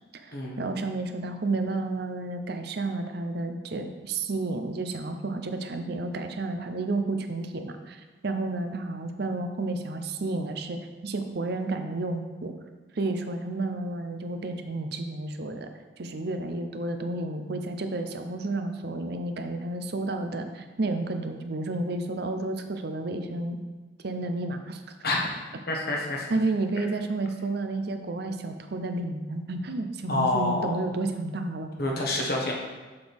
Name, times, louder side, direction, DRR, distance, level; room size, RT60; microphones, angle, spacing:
voice 1, 0.2-12.5 13.0-15.7 16.0-23.6 24.0-24.8 26.3-31.7, right 2 dB, 60° right, 7 dB, 0.6 m, -31 dB
voice 2, 25.7-26.3 30.1-30.7 31.8-32.5, left 2 dB, 55° left, -1 dB, 1.2 m, -27 dB
6.8 x 6.0 x 3.5 m, 1.3 s
head